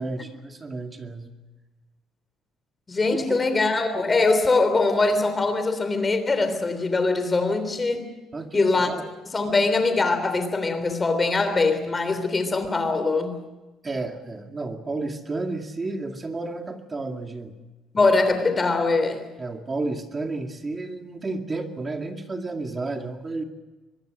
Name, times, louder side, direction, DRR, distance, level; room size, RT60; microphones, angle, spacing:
voice 1, 0.0-1.3 3.3-3.4 8.3-9.1 13.8-17.5 19.4-23.4, right 3 dB, 20° right, 2.3 m, -32 dB
voice 2, 2.9-8.1 8.5-8.9 9.3-13.4 17.9-19.3, left 3 dB, 20° left, 3.4 m, -22 dB
25.0 x 21.5 x 6.4 m
cardioid pair, 150°, 0 cm